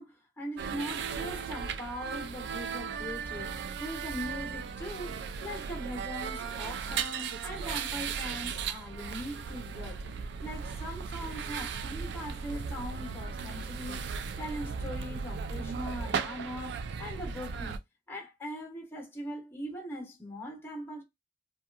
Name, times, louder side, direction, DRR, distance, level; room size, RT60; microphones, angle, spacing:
voice 1, 0.0-17.8 18.1-21.0, equal, 10° left, 0.7 m, -41 dB
sound 1, 0.6-17.8, right 6 dB, 60° right, 0.3 m, -36 dB
2.7 x 2.2 x 2.4 m
head